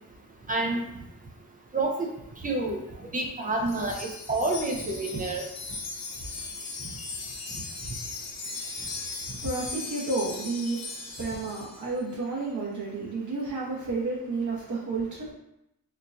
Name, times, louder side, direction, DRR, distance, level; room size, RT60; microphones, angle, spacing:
voice 1, 0.5-0.8 1.7-2.1 2.4-5.4, right 2 dB, 25° right, 1 dB, 0.6 m, -28 dB
Wind chime, 3.7-11.9, left 3 dB, 50° left, 0.8 m, -38 dB
voice 2, 8.4-15.3, right 3 dB, 55° right, -5 dB, 1.2 m, -32 dB
4.4 x 2.3 x 2.6 m, 0.83 s
wide cardioid pair, 95°, 35 cm